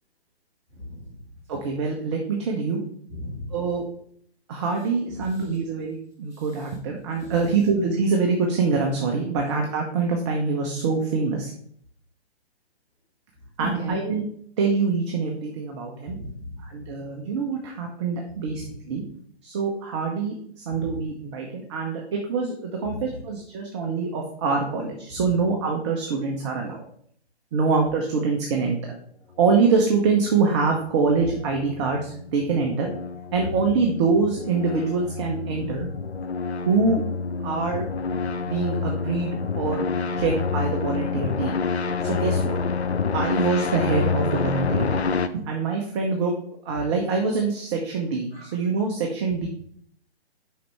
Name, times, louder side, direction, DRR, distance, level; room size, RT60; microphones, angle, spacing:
voice 1, 1.5-2.8 3.5-3.8 4.5-11.5 13.6-14.2 14.6-16.2 16.6-19.0 19.4-26.8 27.5-28.8 29.4-32.9 33.3-35.9 36.6-37.0 37.4-37.9 38.4-39.8 40.1-41.6 42.0-42.6 43.1-46.3 46.7-49.5, right 4 dB, 25° right, 1 dB, 0.8 m, -25 dB
voice 2, 3.1-3.5 7.2-7.3 13.6-14.0 16.1-16.5 18.6-18.7 20.7-21.0 25.1-25.2 35.5-35.8 40.1-40.2 44.5-44.7 48.3-48.4, equal, 10° right, -8 dB, 2.9 m, -35 dB
sound 1, 30.7-45.3, left 5 dB, 80° left, 0.6 m, -28 dB
7.7 x 5.3 x 3.4 m, 0.62 s
figure-of-eight pair, 135°, 32 cm